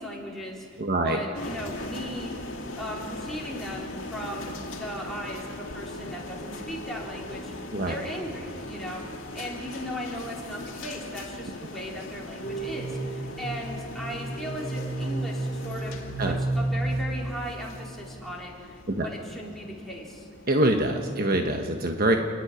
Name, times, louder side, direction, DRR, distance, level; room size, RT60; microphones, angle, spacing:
voice 1, 0.0-2.5 2.8-7.5 7.8-9.1 9.4-20.3, equal, ahead, -4 dB, 3.6 m, -37 dB
voice 2, 0.8-1.2 7.7-7.9 16.2-16.4 18.9-19.1 20.5-22.2, right 1 dB, 50° right, 4 dB, 1.2 m, -24 dB
sound 1, 1.3-21.1, left 2 dB, 80° left, 2.4 m, -40 dB
sound 2, 12.4-17.8, right 2 dB, 30° left, 3.3 m, -31 dB
29.0 x 9.8 x 9.8 m, 2.2 s
head